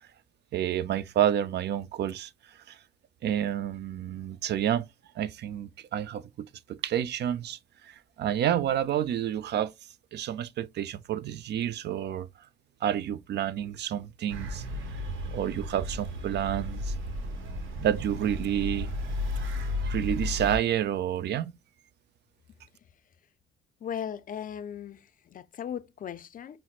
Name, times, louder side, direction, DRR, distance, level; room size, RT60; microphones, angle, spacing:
voice 1, 0.5-2.8 3.2-4.8 5.2-7.6 7.8-9.7 10.1-12.3 12.8-14.6 15.3-17.0 17.8-18.9 19.3-19.5 19.8-21.5, right 10 dB, 60° right, 0.4 m, -29 dB
sound 1, 14.3-20.6, left 1 dB, 80° right, 1.0 m, -33 dB
voice 2, 23.8-26.6, left 9 dB, 45° left, 0.4 m, -37 dB
5.5 x 2.0 x 2.4 m
cardioid pair, 90°, 20 cm